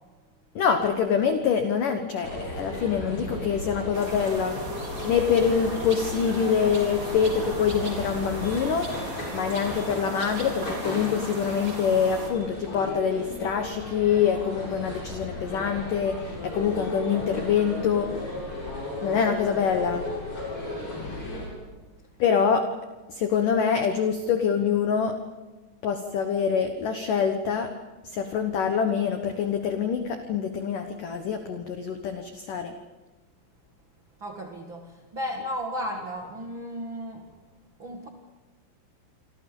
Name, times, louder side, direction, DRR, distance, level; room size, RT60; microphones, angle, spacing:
voice 1, 0.5-4.6 5.0-18.3 19.0-20.0 22.2-22.7 23.1-25.2 25.8-27.7 28.0-32.7, left 7 dB, 85° left, 6 dB, 1.8 m, -25 dB
sound 1, 2.2-21.5, left 1 dB, 25° left, 8.7 m, -35 dB
sound 2, 3.9-12.3, right 1 dB, 25° right, 4.6 m, -37 dB
voice 2, 34.2-37.3 37.8-38.1, equal, 65° right, 3 dB, 1.1 m, -34 dB
28.0 x 26.0 x 5.4 m, 1.2 s
omnidirectional pair, 5.9 m